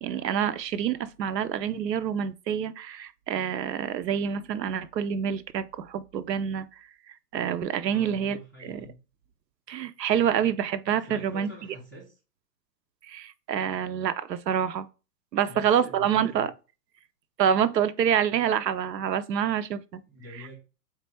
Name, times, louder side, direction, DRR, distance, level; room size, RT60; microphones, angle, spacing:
voice 1, 0.0-8.9 9.7-11.5 13.0-14.9 15.3-16.5 17.4-20.0 20.3-20.4, right 8 dB, 80° right, 0.5 m, -27 dB
voice 2, 7.9-9.0 11.1-12.2 15.4-16.5 20.0-20.5, equal, 15° left, 0.3 m, -46 dB
3.6 x 3.2 x 3.3 m
figure-of-eight pair, 115°, 49 cm